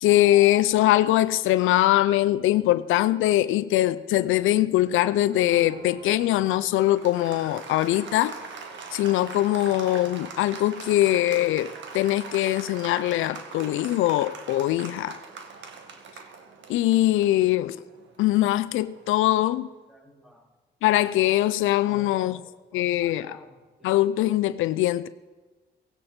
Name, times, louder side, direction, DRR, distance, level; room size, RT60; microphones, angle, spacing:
voice 1, 0.0-8.3 8.9-15.2 16.7-17.8 18.2-19.7 20.8-22.4 22.7-23.4 23.8-25.1, left 14 dB, 85° left, 0.5 m, -22 dB
Applause, 5.2-19.5, right 5 dB, 70° right, 1.9 m, -42 dB
voice 2, 19.9-20.5 21.8-22.4 22.7-23.9, left 1 dB, ahead, 2.8 m, -50 dB
17.5 x 16.5 x 4.4 m
cardioid pair, 90°, 20 cm